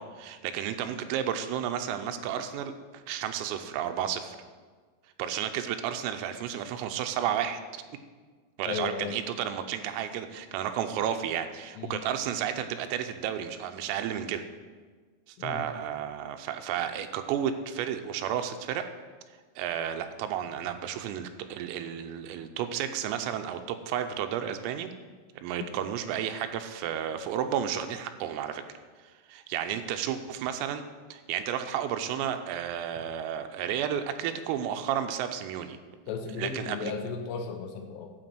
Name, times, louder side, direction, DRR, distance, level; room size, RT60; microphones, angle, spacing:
voice 1, 0.0-2.7 3.1-4.4 5.2-7.8 8.6-14.4 15.4-18.8 19.6-24.9 25.4-28.6 29.3-30.8 31.1-35.8 36.4-36.9, right 9 dB, 90° right, 7 dB, 3.3 m, -32 dB
voice 2, 8.6-9.1 11.8-12.0 15.4-15.7 25.6-25.7 36.1-38.1, left 6 dB, 85° left, 4 dB, 2.4 m, -35 dB
12.0 x 5.2 x 7.7 m, 1.5 s
omnidirectional pair, 6.0 m